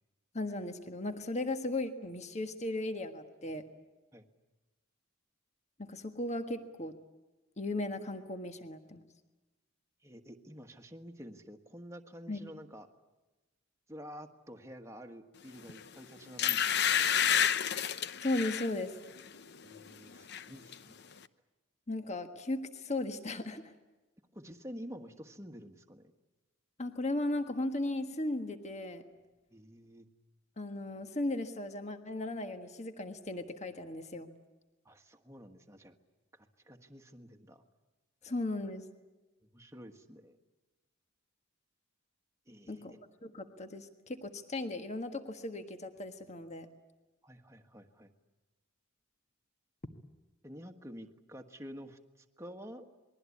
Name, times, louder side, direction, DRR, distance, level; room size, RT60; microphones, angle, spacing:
voice 1, 0.3-3.6 5.8-6.9 7.6-9.0 12.3-12.4 18.2-18.9 21.9-23.7 26.8-29.0 30.6-34.3 38.2-38.8 42.7-42.9 43.2-46.7, left 2 dB, 30° left, 7 dB, 1.5 m, -36 dB
voice 2, 10.0-12.9 13.9-17.5 19.6-21.0 24.3-26.1 29.5-30.1 34.8-35.9 36.3-37.6 38.2-38.3 39.5-40.4 42.5-43.0 47.2-48.1 50.4-52.9, equal, 15° right, 5 dB, 1.5 m, -49 dB
sound 1, 15.7-15.9 16.4-18.7 19.2-19.4 19.7-20.4 20.7-20.8, left 9 dB, 50° left, 0.8 m, -29 dB
28.0 x 21.5 x 8.5 m, 1.1 s
head